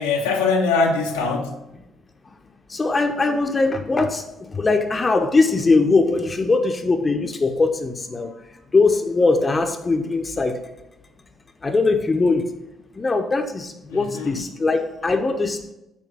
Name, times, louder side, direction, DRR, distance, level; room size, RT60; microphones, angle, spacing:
voice 1, 0.0-1.5 13.9-14.5, left 4 dB, 75° left, 0 dB, 0.8 m, -22 dB
voice 2, 2.7-8.3 8.7-10.6 11.6-12.5 12.9-15.7, left 3 dB, 30° left, 5 dB, 0.8 m, -21 dB
8.5 x 3.3 x 5.4 m, 0.91 s
figure-of-eight pair, 45°, 0 cm